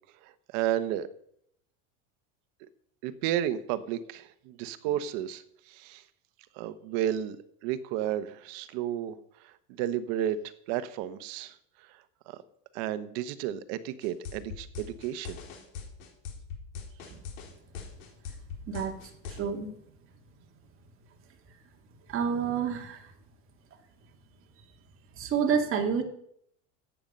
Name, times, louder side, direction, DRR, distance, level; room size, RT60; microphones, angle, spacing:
voice 1, 0.5-1.1 3.0-5.4 5.7-6.0 6.6-7.4 7.6-9.2 9.7-10.4 10.7-11.5 12.3-12.4 12.7-15.4, right 11 dB, 60° right, 12 dB, 1.2 m, -32 dB
sound 1, 14.0-19.4, left 6 dB, 90° left, 3.9 m, -40 dB
voice 2, 19.4-19.7 22.1-23.0 25.2-26.0, right 7 dB, 35° right, 3 dB, 2.2 m, -28 dB
14.5 x 9.1 x 5.4 m, 0.70 s
supercardioid pair, 145°, 39 cm